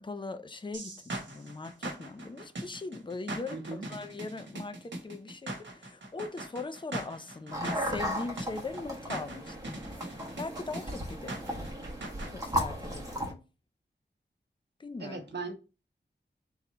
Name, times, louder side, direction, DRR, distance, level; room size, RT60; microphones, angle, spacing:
voice 1, 0.0-11.7 12.3-13.4 14.8-15.2, left 3 dB, 25° left, 0.5 m, -40 dB
sound 1, 0.7-12.3, right 1 dB, 85° right, 1.2 m, -40 dB
voice 2, 3.5-3.8 15.0-15.5, right 3 dB, 65° right, 1.0 m, -38 dB
sound 2, 7.5-13.3, equal, 20° right, 1.3 m, -36 dB
3.7 x 3.0 x 4.4 m
wide cardioid pair, 85°, 19 cm